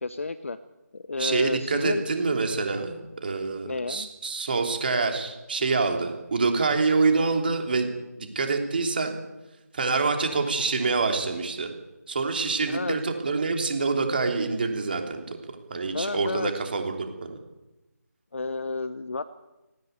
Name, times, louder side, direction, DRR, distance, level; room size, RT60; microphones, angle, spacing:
voice 1, 0.0-0.6 0.9-2.1 3.6-4.1 12.7-13.0 15.9-16.5 18.3-19.2, left 3 dB, 45° left, 12 dB, 1.1 m, -31 dB
voice 2, 1.2-7.9 8.2-9.1 9.7-11.7 12.1-15.4 15.7-17.4, right 4 dB, 35° right, 4 dB, 3.2 m, -26 dB
19.0 x 17.5 x 9.6 m, 1.0 s
figure-of-eight pair, 160°, 9 cm